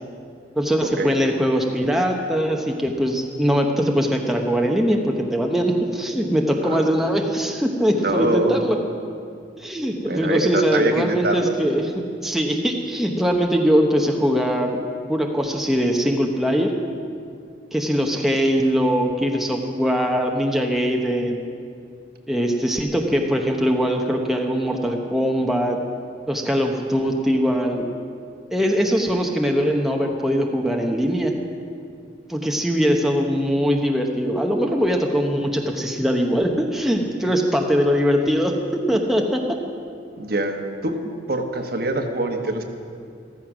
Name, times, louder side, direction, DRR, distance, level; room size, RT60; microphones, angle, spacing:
voice 1, 0.5-8.8 9.6-14.8 15.1-16.7 17.7-21.4 22.3-25.8 26.3-27.9 28.5-31.3 32.3-39.4, equal, ahead, 1 dB, 0.9 m, -21 dB
voice 2, 8.0-8.7 10.0-11.5 40.2-41.0 41.3-42.6, right 2 dB, 55° right, 4 dB, 1.3 m, -24 dB
14.0 x 14.0 x 6.1 m, 2.3 s
head